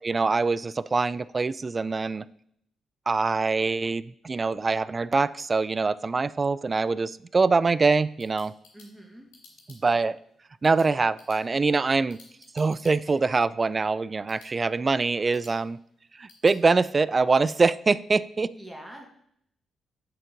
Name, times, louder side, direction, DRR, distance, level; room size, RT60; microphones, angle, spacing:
voice 1, 0.1-2.3 3.1-8.5 9.7-10.1 10.6-12.2 12.5-15.8 16.2-18.5, right 4 dB, 35° right, 18 dB, 0.3 m, -24 dB
sound 1, 7.9-16.6, left 3 dB, 85° left, 2.3 m, -57 dB
voice 2, 8.7-9.3 9.8-10.0 18.5-19.0, right 1 dB, 10° right, 1 dB, 2.2 m, -44 dB
7.6 x 3.8 x 5.1 m, 0.70 s
supercardioid pair, 55°, 0 cm